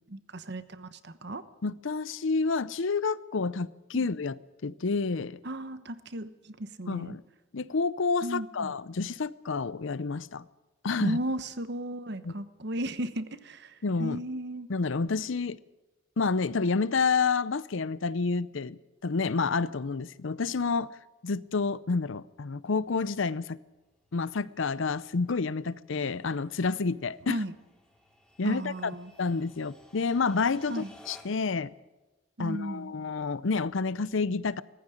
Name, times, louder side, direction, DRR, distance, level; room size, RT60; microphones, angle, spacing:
voice 1, 0.1-1.4 3.9-4.0 5.4-7.2 8.2-8.7 11.0-14.7 27.3-27.5 28.4-29.1 30.7-30.9 32.4-32.9, right 1 dB, 55° right, 1.1 m, -35 dB
voice 2, 1.6-5.4 6.9-7.2 7.5-10.4 10.8-11.2 12.2-12.3 13.8-14.2 14.7-15.6 16.2-20.9 21.2-23.6 24.1-27.4 28.4-28.9 29.2-31.7 32.4-34.6, left 4 dB, 65° left, 0.6 m, -29 dB
sound 1, 21.4-31.6, left 1 dB, 5° left, 3.1 m, -59 dB
19.0 x 15.0 x 10.0 m
head